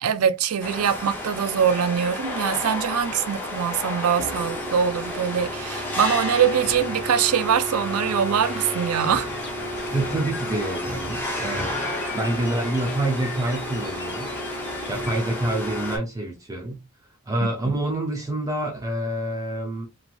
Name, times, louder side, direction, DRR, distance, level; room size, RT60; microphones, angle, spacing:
voice 1, 0.0-9.3 17.6-17.7, right 8 dB, 70° right, 0.4 m, -23 dB
sound 1, 0.6-16.0, left 1 dB, 10° left, 0.8 m, -31 dB
sound 2, 8.4-15.2, left 5 dB, 50° left, 0.8 m, -40 dB
voice 2, 9.9-11.8 12.1-14.3 14.9-16.8 17.3-19.9, right 1 dB, 15° right, 0.6 m, -27 dB
3.0 x 2.4 x 2.4 m
head